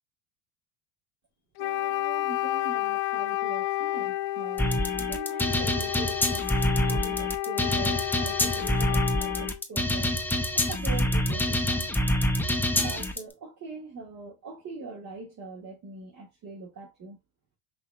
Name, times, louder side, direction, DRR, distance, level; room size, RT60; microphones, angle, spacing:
Wind instrument woodwind instrument, 1.6-9.6, left 16 dB, 60° left, 0.5 m, -31 dB
voice 1, 1.6-6.5 6.8-10.1 10.5-11.9 12.8-17.2, right 3 dB, 40° right, 1.6 m, -42 dB
sound 1, 4.6-13.2, left 1 dB, 5° left, 0.6 m, -26 dB
5.6 x 2.7 x 2.3 m
supercardioid pair, 95°, 43 cm